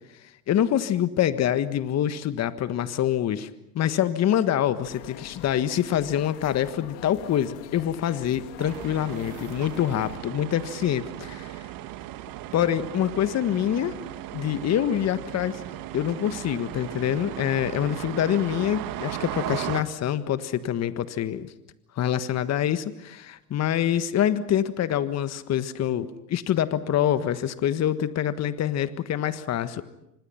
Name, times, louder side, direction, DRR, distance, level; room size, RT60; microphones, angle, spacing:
voice 1, 0.5-3.5 3.7-11.6 12.5-13.9 14.3-15.6 15.9-21.5 22.0-29.8, left 10 dB, 35° left, 12 dB, 1.5 m, -25 dB
sound 1, 4.8-10.2, left 12 dB, 60° left, 2.4 m, -44 dB
sound 2, 8.6-19.8, right 13 dB, 45° right, 1.9 m, -36 dB
29.5 x 26.0 x 5.8 m, 0.84 s
hypercardioid pair, 85°, 46 cm